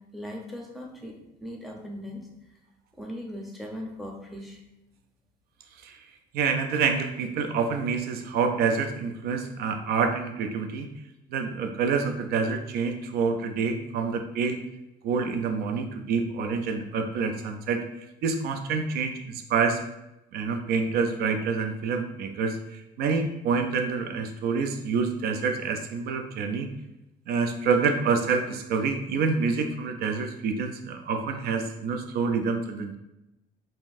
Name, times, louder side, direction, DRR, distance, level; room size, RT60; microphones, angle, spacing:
voice 1, 0.0-2.6 2.9-4.6, left 1 dB, ahead, -1 dB, 0.7 m, -39 dB
voice 2, 6.3-10.9 11.3-14.6 15.0-17.8 18.2-19.8 20.3-26.7 27.3-33.0, right 5 dB, 65° right, 5 dB, 0.4 m, -27 dB
3.7 x 2.6 x 2.5 m, 0.92 s
cardioid pair, 110°, 17 cm